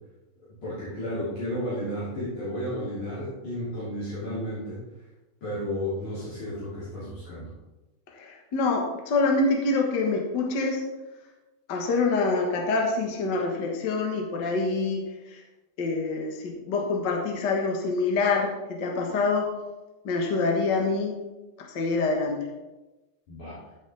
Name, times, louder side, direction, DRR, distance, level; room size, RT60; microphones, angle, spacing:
voice 1, 0.6-4.8 5.4-7.5 23.3-23.6, equal, 50° left, -11 dB, 4.2 m, -32 dB
voice 2, 8.2-10.8 11.7-15.0 15.8-19.5 20.0-21.1 21.6-22.4, left 3 dB, 70° left, 1 dB, 1.0 m, -26 dB
14.5 x 7.5 x 3.5 m, 1.1 s
omnidirectional pair, 4.4 m